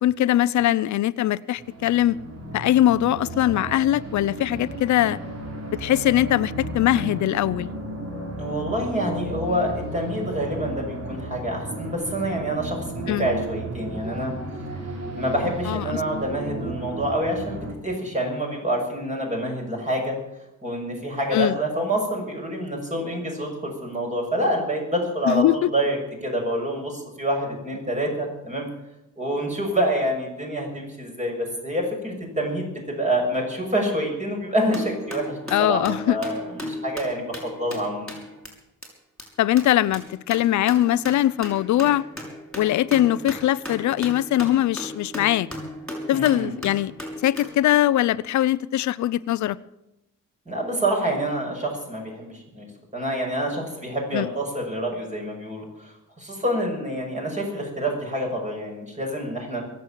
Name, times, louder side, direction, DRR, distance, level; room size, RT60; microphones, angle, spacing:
voice 1, 0.0-2.2 2.5-5.2 5.7-7.7 13.1-13.3 15.7-16.0 21.3-21.6 25.3-25.7 35.5-36.2 39.4-42.0 42.5-45.5 46.1-46.9 47.2-49.6 54.1-54.3, left 13 dB, 70° left, 0.6 m, -21 dB
sound 1, 1.6-17.7, right 2 dB, 55° right, 4.3 m, -34 dB
voice 2, 8.4-14.3 15.1-20.1 20.6-28.7 29.2-35.8 36.1-38.2 46.1-46.5 50.4-52.7 52.9-59.6, right 1 dB, 25° right, 6.7 m, -27 dB
sound 2, 34.7-38.5 38.8-38.9 39.2-39.3 39.6-47.5, equal, 5° left, 6.2 m, -37 dB
21.5 x 8.1 x 7.5 m
cardioid pair, 90°, 30 cm